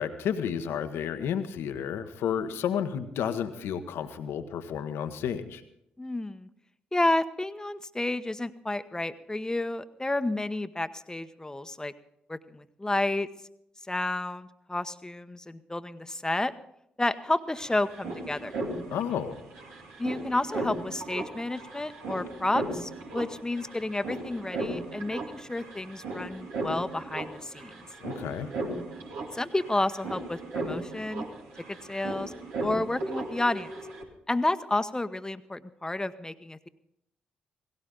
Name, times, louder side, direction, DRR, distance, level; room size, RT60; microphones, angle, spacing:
voice 1, 0.0-5.6 18.9-19.4 28.0-28.5, left 8 dB, 70° left, 9 dB, 1.1 m, -31 dB
voice 2, 6.0-6.5 6.9-11.9 12.3-13.3 13.9-16.5 17.0-18.6 20.0-27.7 29.3-31.2 31.7-32.3 32.6-33.7 34.3-36.7, left 2 dB, 15° left, 12 dB, 1.0 m, -31 dB
sound 1, 17.0-17.1 17.3-34.0, right 2 dB, 75° right, 2.3 m, -37 dB
17.5 x 17.0 x 3.9 m, 0.77 s
hypercardioid pair, 40°, 4 cm